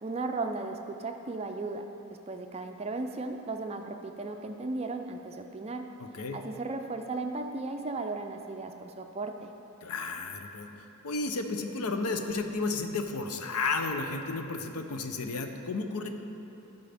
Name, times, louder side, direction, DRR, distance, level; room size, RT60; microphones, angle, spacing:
voice 1, 0.0-1.9 2.3-5.9 6.3-9.5, right 3 dB, 30° right, 5 dB, 0.4 m, -36 dB
voice 2, 6.0-6.4 9.8-16.1, left 3 dB, 90° left, 6 dB, 0.7 m, -33 dB
14.0 x 5.5 x 3.5 m, 2.9 s
head